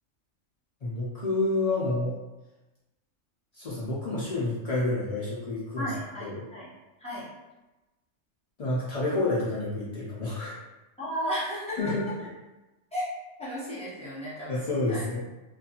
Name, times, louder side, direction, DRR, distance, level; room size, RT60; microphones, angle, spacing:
voice 1, 0.8-2.2 3.5-5.9 6.2-6.5 8.6-10.5 11.8-12.0 14.5-15.2, left 2 dB, 90° left, -7 dB, 0.3 m, -29 dB
voice 2, 5.8-6.7 7.0-7.3 11.0-12.1 12.9-13.1 13.4-14.6 14.9-15.0, equal, 5° left, -11 dB, 0.9 m, -34 dB
2.4 x 2.3 x 2.8 m, 1.1 s
omnidirectional pair, 1.3 m